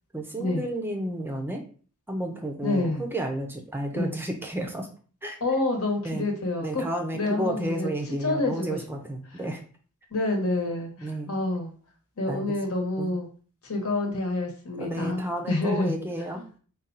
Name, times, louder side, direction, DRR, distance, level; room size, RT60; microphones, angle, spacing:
voice 1, 0.1-1.6 2.1-4.9 5.2-5.6 6.0-6.3 6.6-9.6 11.0-11.3 12.3-12.4 13.0-13.2 14.7-16.6, right 1 dB, 10° right, 3 dB, 0.5 m, -32 dB
voice 2, 2.6-3.0 3.9-4.1 5.4-6.8 7.1-7.9 8.2-8.8 10.1-11.7 12.2-13.3 13.6-16.0, left 2 dB, 70° left, 2 dB, 1.1 m, -28 dB
4.2 x 2.3 x 3.8 m, 0.41 s
head